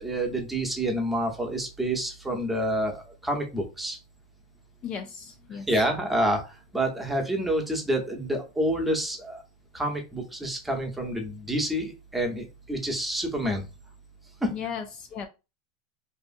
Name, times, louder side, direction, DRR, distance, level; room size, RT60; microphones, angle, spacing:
voice 1, 0.0-4.0 5.5-9.4 9.7-13.6 14.4-14.5, right 1 dB, 5° right, 2 dB, 0.8 m, -28 dB
voice 2, 4.8-5.7 14.5-15.3, left 7 dB, 40° left, 6 dB, 0.3 m, -35 dB
2.7 x 2.4 x 2.4 m, 0.28 s
supercardioid pair, 120°, 2 cm